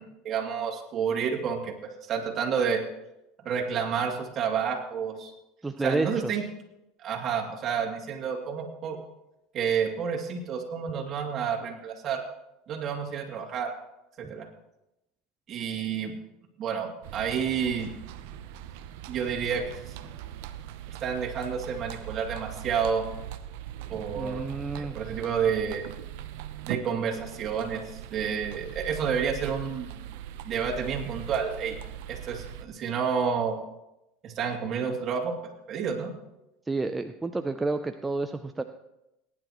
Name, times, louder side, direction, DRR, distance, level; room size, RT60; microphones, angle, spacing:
voice 1, 0.0-1.7 2.1-2.8 3.4-5.3 5.8-6.4 7.0-9.0 9.5-12.2 12.7-13.7 14.2-14.5 15.5-16.1 16.6-17.9 19.1-20.0 21.0-23.1 23.9-24.4 24.7-25.9 26.7-30.0 30.4-31.7 32.1-33.6 34.2-35.3 35.7-36.1, right 6 dB, 40° right, 0 dB, 2.6 m, -30 dB
voice 2, 5.6-6.4 14.2-14.3 23.9-24.9 36.7-38.6, right 3 dB, 10° right, 7 dB, 0.5 m, -30 dB
sound 1, 17.0-32.7, right 11 dB, 75° right, 0.7 m, -40 dB
19.0 x 10.5 x 3.1 m, 0.89 s
supercardioid pair, 110°, 0 cm